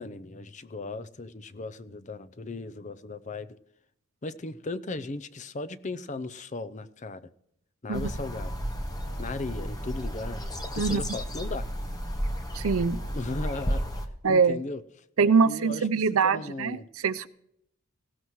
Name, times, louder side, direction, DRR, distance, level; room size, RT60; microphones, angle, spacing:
voice 1, 0.0-3.6 4.2-7.3 7.8-8.5 9.2-10.4 10.7-11.7 13.1-13.8 14.3-14.8 15.2-16.9, left 3 dB, 35° left, 12 dB, 0.6 m, -37 dB
sound 1, 7.9-14.1, equal, 15° left, 1.1 m, -32 dB
voice 2, 12.5-13.0 14.2-14.6 15.2-16.8 17.0-17.3, right 5 dB, 75° right, 14 dB, 0.6 m, -23 dB
18.5 x 16.5 x 3.1 m, 0.75 s
head